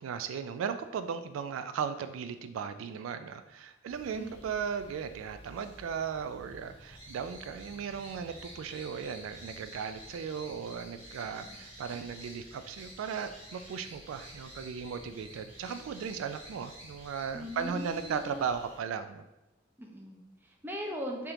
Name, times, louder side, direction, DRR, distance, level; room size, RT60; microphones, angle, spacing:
voice 1, 0.0-19.2, right 6 dB, 85° right, 10 dB, 0.3 m, -37 dB
sound 1, 3.9-18.8, equal, 30° right, 1.5 m, -50 dB
voice 2, 17.3-18.4 19.8-21.3, equal, 10° right, 0 dB, 0.5 m, -40 dB
3.5 x 2.9 x 3.6 m, 0.99 s
head